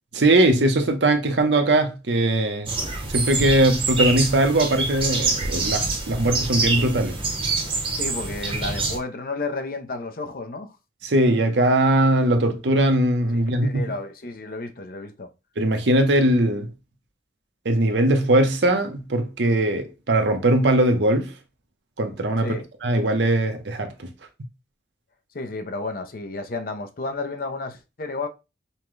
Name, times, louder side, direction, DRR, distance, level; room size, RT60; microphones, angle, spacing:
voice 1, 0.1-2.7 3.1-7.2 11.0-13.9 15.6-16.7 17.6-21.3 22.0-24.1, right 1 dB, 80° right, 0.8 m, -20 dB
sound 1, 2.7-9.0, right 3 dB, 30° right, 0.8 m, -26 dB
voice 2, 8.0-10.8 13.3-15.3 22.4-22.6 25.3-28.3, left 3 dB, 55° left, 0.6 m, -32 dB
5.5 x 2.2 x 3.1 m
head